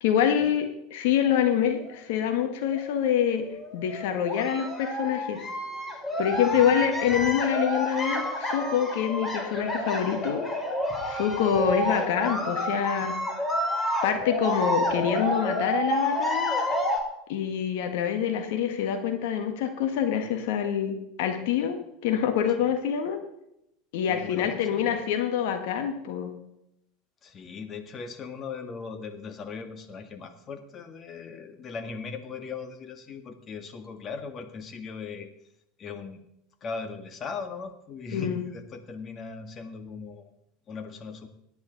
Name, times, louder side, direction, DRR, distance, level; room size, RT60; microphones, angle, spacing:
voice 1, 0.0-3.4 3.7-5.4 6.2-10.5 11.0-13.2 14.0-16.5 17.3-21.8 22.0-23.2 23.9-26.3 38.1-38.4, left 9 dB, 70° left, 6 dB, 1.6 m, -26 dB
sound 1, 1.8-1.9 2.7-2.8 3.3-17.0, equal, 20° left, 3.1 m, -29 dB
voice 2, 24.1-25.0 27.2-35.3 35.8-36.2 36.6-40.3 40.7-41.3, left 5 dB, 35° left, 8 dB, 1.9 m, -39 dB
17.5 x 10.0 x 4.1 m, 0.81 s
hypercardioid pair, 85°, 0 cm